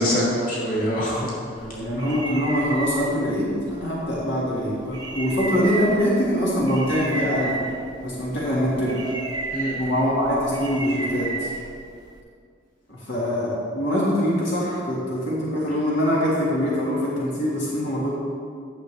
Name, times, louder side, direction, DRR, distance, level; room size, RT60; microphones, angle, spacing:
voice 1, 0.0-1.8 9.5-9.8, equal, 50° left, -6 dB, 2.1 m, -25 dB
voice 2, 1.6-7.6 8.0-9.0 9.8-11.5 12.9-18.1, equal, 75° left, -6 dB, 1.7 m, -24 dB
sound 1, 1.6-12.2, right 3 dB, 20° right, 0.6 m, -34 dB
sound 2, 4.7-11.6, equal, 30° left, 1.3 m, -40 dB
10.5 x 6.6 x 3.3 m, 2.2 s
head